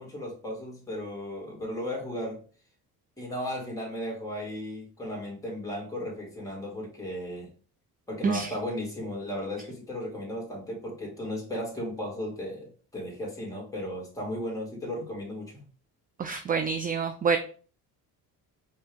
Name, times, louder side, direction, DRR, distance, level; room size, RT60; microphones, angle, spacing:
voice 1, 0.0-2.4 3.2-7.5 8.1-15.6, left 1 dB, 10° left, -2 dB, 2.4 m, -35 dB
voice 2, 8.2-8.5 16.2-17.4, right 5 dB, 25° right, 7 dB, 0.4 m, -27 dB
5.1 x 2.8 x 3.6 m, 0.40 s
cardioid pair, 100°, 38 cm